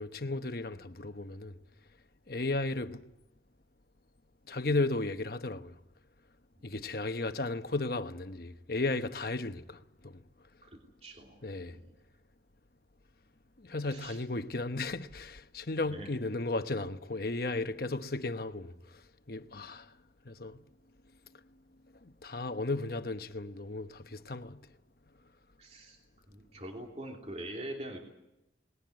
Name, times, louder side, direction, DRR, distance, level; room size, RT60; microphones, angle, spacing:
voice 1, 0.0-1.6 2.3-3.0 4.5-5.8 6.6-10.2 11.4-11.8 13.6-18.7 19.3-19.9 20.2-20.6 22.0-24.6, left 2 dB, 55° left, 1.0 m, -35 dB
voice 2, 11.0-11.9 13.9-14.2 15.9-16.1 20.5-20.6 25.6-26.0 26.3-28.0, right 1 dB, 35° right, 3.0 m, -44 dB
20.0 x 18.0 x 9.5 m
head